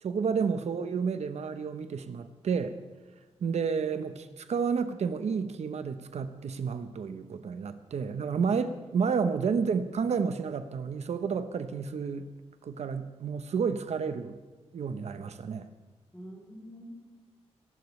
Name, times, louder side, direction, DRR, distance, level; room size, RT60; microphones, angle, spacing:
voice 1, 0.0-2.8 3.4-4.1 4.5-12.3 12.6-14.4 14.7-15.7, right 6 dB, 75° right, 10 dB, 0.9 m, -30 dB
voice 2, 16.1-16.9, equal, 5° left, -8 dB, 3.6 m, -47 dB
22.0 x 12.0 x 3.3 m, 1.3 s
wide cardioid pair, 115°, 11 cm